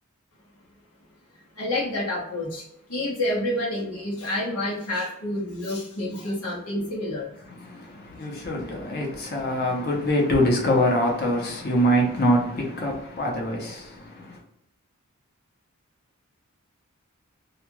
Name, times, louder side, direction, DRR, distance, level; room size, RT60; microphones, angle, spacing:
voice 1, 1.6-2.6 2.9-7.3, left 1 dB, 85° left, 0.9 m, -28 dB
voice 2, 7.4-14.4, equal, 45° left, 0.7 m, -24 dB
2.4 x 2.3 x 3.0 m
head